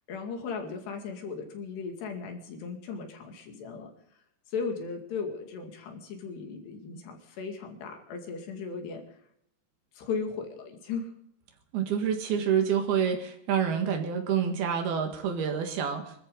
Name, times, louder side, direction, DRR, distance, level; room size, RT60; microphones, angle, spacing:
voice 1, 0.1-3.9 4.5-9.0 9.9-11.1, left 5 dB, 85° left, 3 dB, 4.4 m, -36 dB
voice 2, 11.7-16.1, right 7 dB, 70° right, 5 dB, 3.6 m, -27 dB
24.5 x 14.0 x 3.9 m, 0.72 s
omnidirectional pair, 4.7 m